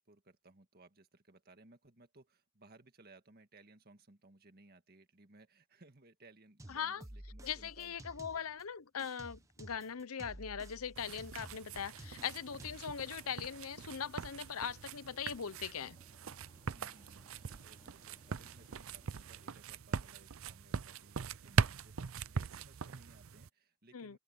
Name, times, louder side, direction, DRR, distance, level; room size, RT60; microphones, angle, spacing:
voice 1, 0.0-8.2 16.7-24.2, right 2 dB, 45° right, 1.8 m, -62 dB
sound 1, 6.6-8.6 9.0-13.0, right 1 dB, 15° right, 1.0 m, -52 dB
voice 2, 6.7-7.0 7.4-16.0 23.9-24.2, left 7 dB, 75° left, 0.8 m, -40 dB
sound 2, 11.0-23.5, right 5 dB, 65° right, 0.6 m, -41 dB
sound 3, 11.7-19.5, left 1 dB, 25° left, 5.7 m, -67 dB
open air
head